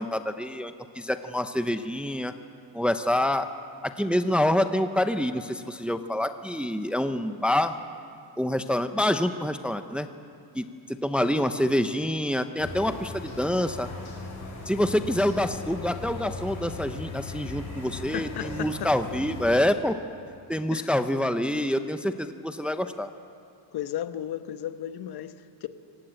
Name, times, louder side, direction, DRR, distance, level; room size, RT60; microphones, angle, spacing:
voice 1, 0.0-2.3 2.7-3.5 3.8-7.8 8.4-10.1 10.5-13.9 14.7-20.0 20.5-23.1, left 1 dB, ahead, 9 dB, 0.7 m, -26 dB
sound 1, 12.6-19.6, left 3 dB, 40° left, 7.2 m, -38 dB
voice 2, 18.1-18.9 20.5-20.9 23.7-25.7, left 11 dB, 60° left, 10 dB, 1.2 m, -35 dB
25.0 x 18.0 x 8.8 m, 2.4 s
cardioid pair, 135°, 44 cm